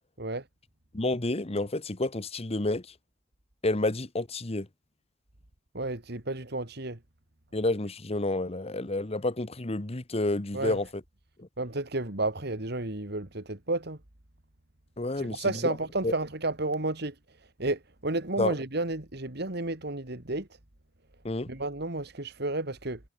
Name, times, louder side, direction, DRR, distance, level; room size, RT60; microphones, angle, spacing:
voice 1, 0.9-2.8 3.6-4.7 7.5-10.9 11.4-11.5 15.0-15.5 16.0-16.1 18.4-18.5 21.2-21.5, left 2 dB, 35° left, 1.3 m, -29 dB
voice 2, 5.7-7.0 10.5-10.8 11.6-14.0 15.2-20.5 21.5-23.0, right 2 dB, 60° right, 2.7 m, -32 dB
head